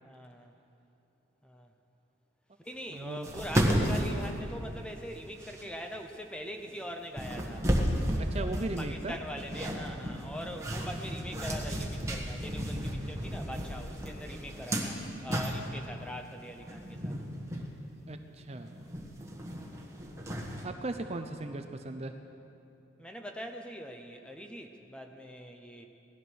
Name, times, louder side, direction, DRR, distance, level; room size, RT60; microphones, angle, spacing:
voice 1, 0.0-0.5 1.4-1.7 2.6-7.7 8.4-17.2 23.0-25.9, equal, 5° left, 4 dB, 0.8 m, -42 dB
sound 1, 2.9-3.0 3.2-5.0 5.4-5.6 6.7-6.8 7.2-15.9 16.6-17.7 18.1-18.2 18.5-20.6, equal, 15° right, 1.4 m, -33 dB
voice 2, 2.9-3.3 5.6-5.7 8.2-9.2 18.1-18.8 20.6-22.1, right 2 dB, 30° right, 6 dB, 0.5 m, -37 dB
18.0 x 12.0 x 6.3 m, 2.9 s
head